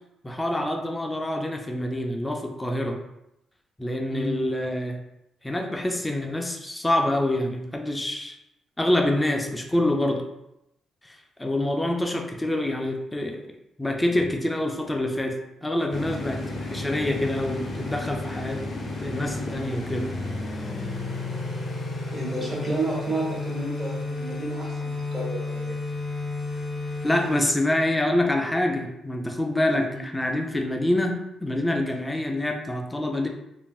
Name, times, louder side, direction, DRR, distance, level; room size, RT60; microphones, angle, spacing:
voice 1, 0.2-3.0 3.8-5.0 5.4-8.4 8.8-10.3 11.0-13.4 13.8-15.4 15.6-18.6 19.0-20.1 27.0-33.3, left 1 dB, 15° left, 3 dB, 0.4 m, -26 dB
sound 1, 15.9-27.5, left 2 dB, 45° left, 0.7 m, -32 dB
voice 2, 22.1-25.8 29.9-30.0, right 2 dB, 20° right, -4 dB, 1.2 m, -31 dB
3.2 x 2.5 x 2.3 m, 0.84 s
cardioid pair, 100°, 0 cm